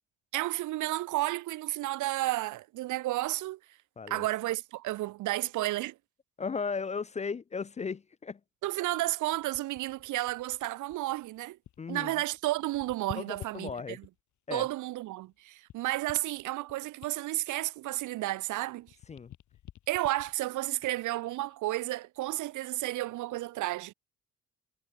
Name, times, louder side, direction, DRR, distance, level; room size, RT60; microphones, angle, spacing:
voice 1, 0.3-3.6 4.1-6.0 8.6-11.6 11.9-14.1 14.5-18.9 19.9-23.9, right 17 dB, 80° right, 0.7 m, -32 dB
voice 2, 6.4-8.4 11.8-12.1 13.1-14.0 14.5-14.7 19.1-19.3, left 5 dB, 25° left, 0.4 m, -36 dB
sound 1, 9.2-12.0 12.3-14.4 14.9-18.5 18.8-21.6 22.1-22.3, left 12 dB, 75° left, 2.4 m, -51 dB
cardioid pair, 90°, 30 cm